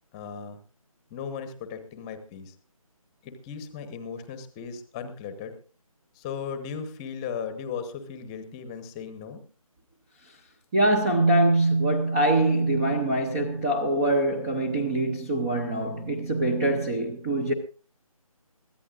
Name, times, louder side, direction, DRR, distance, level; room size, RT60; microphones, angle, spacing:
voice 1, 0.1-0.6 1.1-2.5 3.2-5.5 6.1-9.4, left 6 dB, 10° left, 1.0 m, -37 dB
voice 2, 10.7-17.5, right 2 dB, 10° right, 0.6 m, -23 dB
22.5 x 16.0 x 2.5 m
figure-of-eight pair, 165°, 19 cm